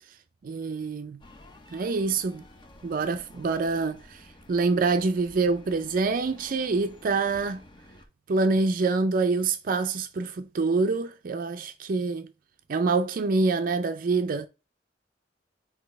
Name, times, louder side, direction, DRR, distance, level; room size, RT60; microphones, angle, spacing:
voice 1, 0.4-1.2 1.7-2.4 2.8-7.6 8.3-12.3 12.7-14.5, right 3 dB, 50° right, 0.4 m, -26 dB
sound 1, 1.2-8.1, left 1 dB, 25° left, 0.7 m, -52 dB
6.0 x 2.7 x 3.2 m
head